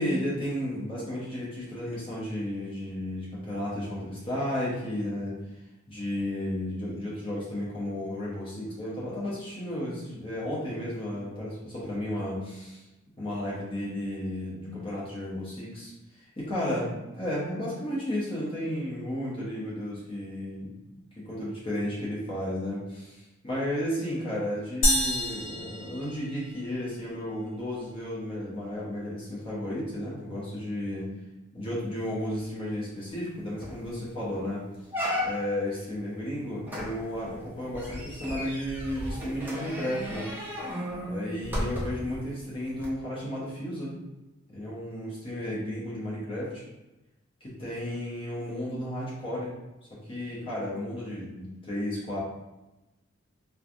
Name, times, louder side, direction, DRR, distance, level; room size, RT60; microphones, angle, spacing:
voice 1, 0.0-5.4 5.9-12.8 13.2-15.9 16.4-20.8 21.2-23.2 23.4-31.1 31.5-34.6 35.2-40.3 41.0-43.9 44.5-46.6 47.4-49.5 50.0-52.2, left 1 dB, 25° left, -7 dB, 0.9 m, -33 dB
sound 1, 24.8-26.8, left 1 dB, 60° left, 0.8 m, -28 dB
sound 2, 33.2-33.3 33.6-33.9 34.3-34.4 34.9-35.7 36.7-42.2 42.8-42.9, left 1 dB, 10° right, 0.5 m, -34 dB
3.1 x 2.2 x 2.5 m, 1.0 s
head